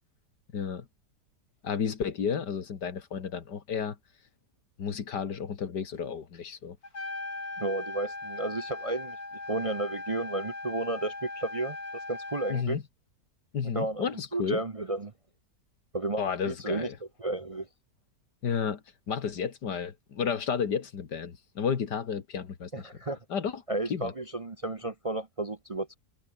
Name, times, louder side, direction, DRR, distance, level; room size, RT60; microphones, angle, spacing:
voice 1, 0.5-0.9 1.6-4.0 4.8-6.8 12.5-12.8 13.5-14.6 16.2-17.0 18.4-22.9 23.3-23.6 23.9-24.1, left 6 dB, 85° left, 2.4 m, -32 dB
Trumpet, 6.8-12.6, left 2 dB, 60° left, 6.4 m, -39 dB
voice 2, 7.6-9.2 9.5-11.8 12.1-12.8 13.7-14.1 14.3-15.1 15.9-16.9 17.2-17.7 22.7-23.2 23.7-26.0, right 2 dB, 30° right, 0.7 m, -32 dB
omnidirectional pair, 1.8 m